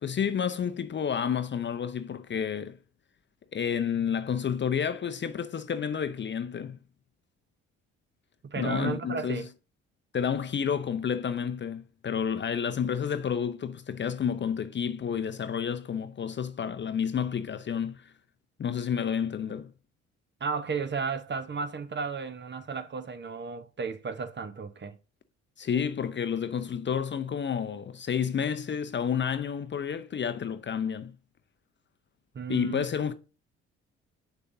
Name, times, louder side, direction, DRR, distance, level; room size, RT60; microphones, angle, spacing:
voice 1, 0.0-2.8 3.5-6.8 8.6-9.5 10.1-18.1 18.6-19.7 25.6-31.1 32.5-33.1, left 7 dB, 35° left, 0.7 m, -30 dB
voice 2, 8.4-9.5 20.4-25.0 32.3-32.9, right 5 dB, 30° right, 1.0 m, -34 dB
7.3 x 6.4 x 2.7 m
hypercardioid pair, 50°, 35 cm